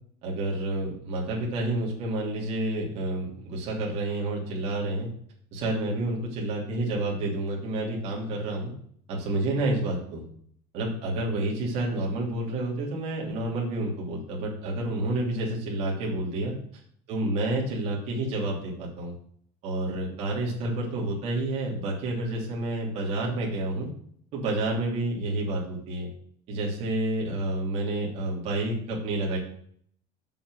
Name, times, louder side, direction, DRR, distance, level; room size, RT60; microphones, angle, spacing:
voice 1, 0.2-5.1 5.5-8.7 9.1-10.2 10.7-16.5 17.1-19.1 19.6-23.9 24.3-26.1 26.5-29.4, right 2 dB, 40° right, -3 dB, 2.9 m, -29 dB
7.9 x 5.9 x 6.3 m, 0.62 s
cardioid pair, 175°, 16 cm